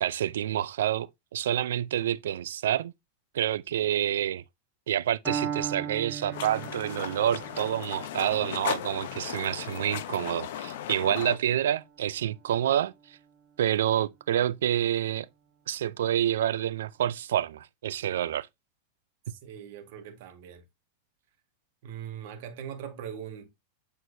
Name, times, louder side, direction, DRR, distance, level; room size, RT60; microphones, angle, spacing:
voice 1, 0.0-2.9 3.3-4.4 4.9-13.2 13.6-15.3 15.7-18.5, right 11 dB, 85° right, 0.4 m, -28 dB
Piano, 5.3-13.2, right 7 dB, 5° left, 3.9 m, -39 dB
sound 1, 6.3-11.4, left 11 dB, 70° left, 0.8 m, -36 dB
voice 2, 19.3-20.6 21.8-23.5, right 8 dB, 60° right, 1.6 m, -41 dB
7.9 x 4.5 x 2.7 m
supercardioid pair, 140°, 0 cm